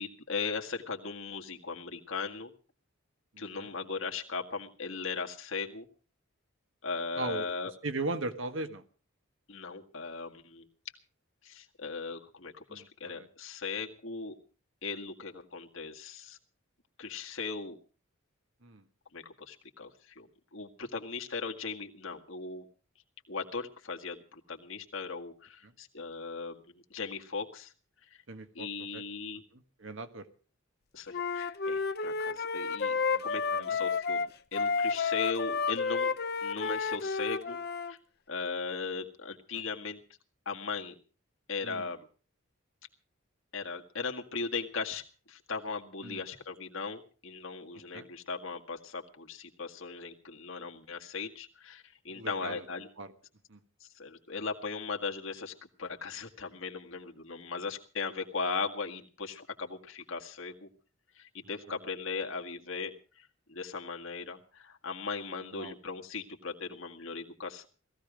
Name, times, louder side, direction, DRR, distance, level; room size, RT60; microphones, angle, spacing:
voice 1, 0.0-2.5 3.4-5.9 6.8-7.7 9.5-10.7 11.4-14.4 14.8-16.4 17.0-17.8 19.1-22.7 23.3-27.7 28.0-28.2 28.5-29.4 30.9-34.2 34.5-36.1 36.4-37.6 37.9-38.0 38.3-40.0 40.5-40.9 41.5-42.1 43.5-52.9 53.8-55.5 55.8-60.7 61.2-67.7, left 4 dB, 70° left, 2 dB, 2.0 m, -38 dB
voice 2, 7.8-8.8 12.7-13.3 18.6-18.8 28.3-28.7 28.9-29.0 29.8-30.2 33.1-33.2 33.5-33.6 41.6-41.8 46.0-46.2 47.9-48.0 52.2-52.6 53.0-53.1 53.5-53.6 65.5-65.7, right 2 dB, 65° right, 9 dB, 1.6 m, -37 dB
Wind instrument woodwind instrument, 31.1-37.9, left 5 dB, 50° left, 0.8 m, -31 dB
18.0 x 15.5 x 5.1 m, 0.39 s
head